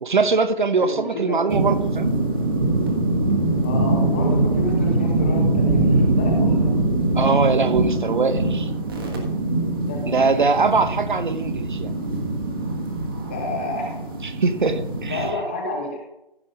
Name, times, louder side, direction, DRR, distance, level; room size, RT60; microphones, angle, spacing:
voice 1, 0.0-2.1 7.1-8.7 10.1-11.9 14.2-15.3, right 4 dB, 55° right, 11 dB, 1.1 m, -22 dB
voice 2, 0.9-1.4 3.6-6.7 9.9-10.4 13.3-13.9 15.1-16.0, left 2 dB, 10° left, 0 dB, 0.9 m, -30 dB
sound 1, 1.5-15.3, right 2 dB, 25° right, 1.5 m, -22 dB
15.0 x 5.2 x 5.2 m, 0.88 s
figure-of-eight pair, 165°, 30 cm